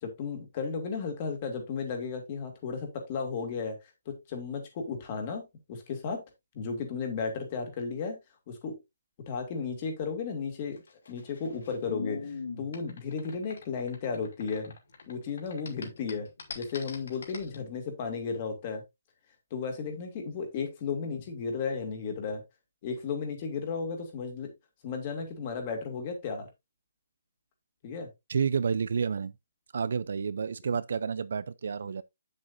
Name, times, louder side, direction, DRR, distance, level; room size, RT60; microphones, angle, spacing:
voice 1, 0.0-3.8 4.1-5.4 5.7-6.2 6.5-8.2 8.5-8.8 9.3-10.8 11.1-14.7 15.1-16.3 16.5-18.8 19.5-22.4 22.8-24.5 24.8-26.5 27.8-28.1 30.7-30.8, left 5 dB, 20° left, 2.1 m, -34 dB
sound 1, 10.8-15.1 15.4-17.6, left 5 dB, 55° left, 2.8 m, -41 dB
voice 2, 28.3-29.3 29.7-32.0, right 6 dB, 50° right, 0.4 m, -30 dB
8.7 x 7.7 x 2.6 m
hypercardioid pair, 180°, 0 cm